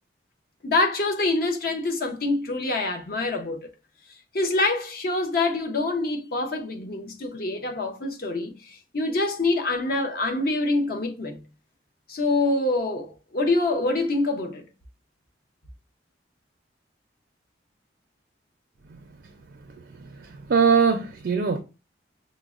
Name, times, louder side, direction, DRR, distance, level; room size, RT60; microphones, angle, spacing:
voice 1, 0.6-3.7 4.3-11.4 12.1-14.6, left 2 dB, 50° left, 0.6 m, -25 dB
voice 2, 20.0-21.6, right 5 dB, 55° right, 0.4 m, -22 dB
5.8 x 2.0 x 2.4 m
head